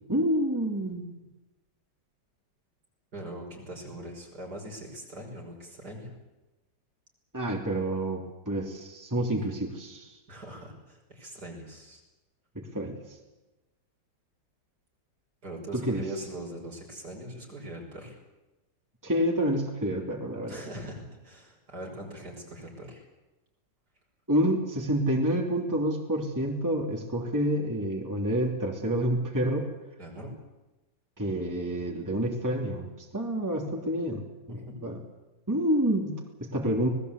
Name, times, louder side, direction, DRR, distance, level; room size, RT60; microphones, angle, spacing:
voice 1, 0.1-1.1 7.3-10.1 12.5-13.0 15.7-16.1 19.0-20.6 24.3-29.7 31.2-35.0 35.5-36.9, right 1 dB, 10° right, 0 dB, 2.9 m, -28 dB
voice 2, 3.1-6.1 10.3-12.0 15.4-18.2 20.4-23.0 30.0-30.3 34.5-34.8, right 1 dB, 60° right, 0 dB, 6.3 m, -41 dB
26.0 x 19.5 x 8.3 m, 1.1 s
omnidirectional pair, 2.0 m